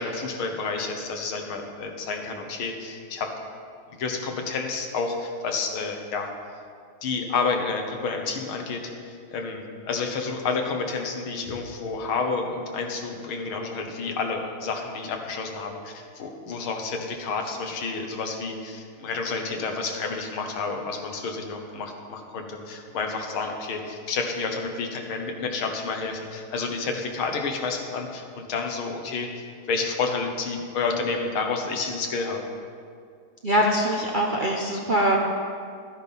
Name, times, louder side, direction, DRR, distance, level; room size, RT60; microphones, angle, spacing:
voice 1, 0.0-3.3 3.9-6.3 7.0-32.5, left 4 dB, 80° left, 3 dB, 2.1 m, -30 dB
voice 2, 33.4-35.2, right 1 dB, 50° right, -1 dB, 0.5 m, -23 dB
12.5 x 9.7 x 5.5 m, 2.2 s
omnidirectional pair, 2.3 m